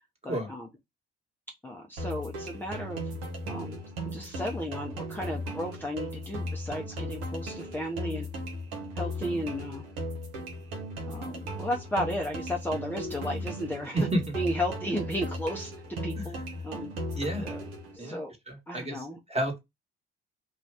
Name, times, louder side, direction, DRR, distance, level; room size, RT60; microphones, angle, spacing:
voice 1, 0.2-0.7 1.6-3.0 3.5-3.8 4.0-8.3 8.9-9.8 11.1-14.1 14.3-16.4 16.6-16.9 17.3-17.6 17.9-18.3 18.7-19.2, equal, 5° left, 0.6 m, -34 dB
sound 1, 2.0-18.0, equal, 85° right, 0.8 m, -37 dB
voice 2, 17.1-17.4 18.0-18.2 18.5-19.0 19.3-19.6, right 1 dB, 20° right, 1.3 m, -30 dB
2.5 x 2.3 x 3.4 m
hypercardioid pair, 55°, 32 cm